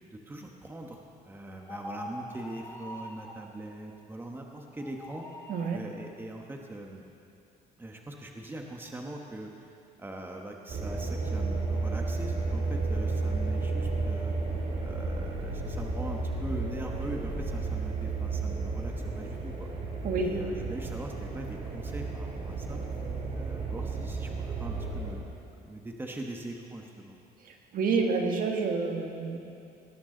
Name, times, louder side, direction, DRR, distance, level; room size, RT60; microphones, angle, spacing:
voice 1, 0.1-5.2 5.7-7.0 7.8-9.7 10.0-14.4 14.8-19.7 20.2-22.8 23.3-27.2, right 1 dB, 10° right, 1 dB, 1.2 m, -42 dB
sound 1, 1.6-3.4 4.7-5.8, equal, 15° left, 1.9 m, -43 dB
sound 2, 10.7-25.1, right 3 dB, 40° right, 2.6 m, -32 dB
voice 2, 27.7-29.4, right 4 dB, 55° right, 2 dB, 1.6 m, -28 dB
18.5 x 12.5 x 3.9 m, 2.6 s
cardioid pair, 110°, 17 cm